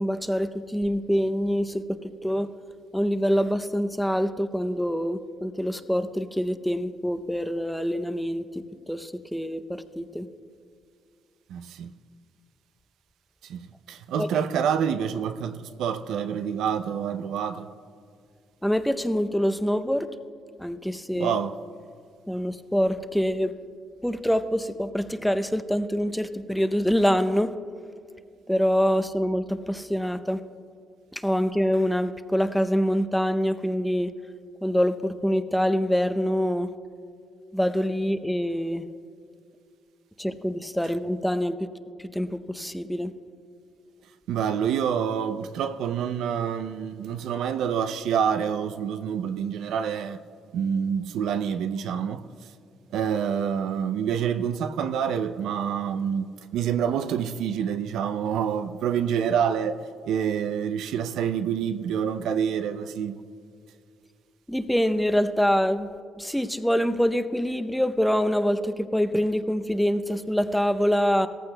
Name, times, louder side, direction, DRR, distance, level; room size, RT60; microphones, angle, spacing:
voice 1, 0.0-1.8 2.2-2.5 2.9-10.3 14.2-14.3 18.6-20.1 20.6-21.3 22.3-23.5 24.0-27.5 28.5-30.4 31.1-34.1 34.6-36.7 37.5-38.8 40.2-41.7 42.0-43.1 64.5-65.9 66.2-71.3, equal, 5° left, 0.6 m, -25 dB
voice 2, 11.5-11.9 13.4-17.7 21.2-21.5 44.3-50.2 50.5-52.2 52.9-59.8 60.1-63.2, right 8 dB, 85° right, 0.4 m, -27 dB
17.5 x 14.5 x 2.2 m
cardioid pair, 90°, 0 cm